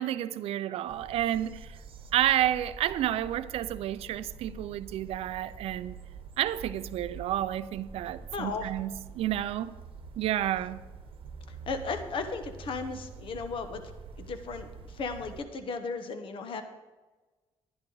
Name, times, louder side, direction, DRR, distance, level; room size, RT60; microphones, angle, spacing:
voice 1, 0.0-1.8 2.1-6.0 6.4-9.7 10.2-10.8, right 12 dB, 85° right, 0.4 m, -30 dB
sound 1, 0.9-15.4, right 4 dB, 65° right, 1.1 m, -46 dB
voice 2, 8.3-8.7 11.7-13.8 14.2-16.6, left 4 dB, 60° left, 1.0 m, -35 dB
11.0 x 11.0 x 3.9 m
cardioid pair, 105°, 10 cm